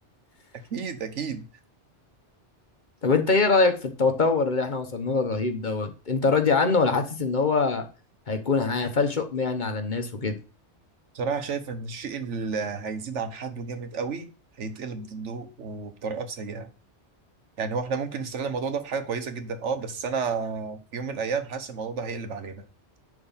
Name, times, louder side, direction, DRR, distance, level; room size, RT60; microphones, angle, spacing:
voice 1, 0.7-1.4 11.1-14.3 14.6-16.7 17.6-22.6, right 5 dB, 85° right, 1.4 m, -31 dB
voice 2, 3.0-7.9 8.3-10.4, left 4 dB, 45° left, 1.1 m, -23 dB
10.5 x 3.6 x 5.6 m
omnidirectional pair, 1.2 m